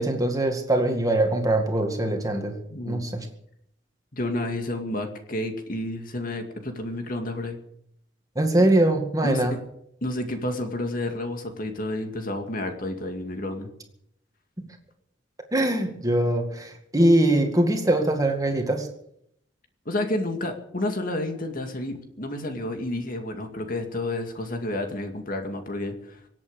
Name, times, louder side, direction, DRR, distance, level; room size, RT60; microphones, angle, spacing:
voice 1, 0.0-2.5 2.9-3.3 8.4-9.5 15.5-18.9, right 1 dB, 20° right, 4 dB, 2.1 m, -22 dB
voice 2, 2.7-3.1 4.1-7.6 9.2-9.6 10.0-13.7 19.9-26.2, left 1 dB, 50° left, 5 dB, 2.2 m, -30 dB
25.0 x 8.6 x 6.7 m, 0.74 s
head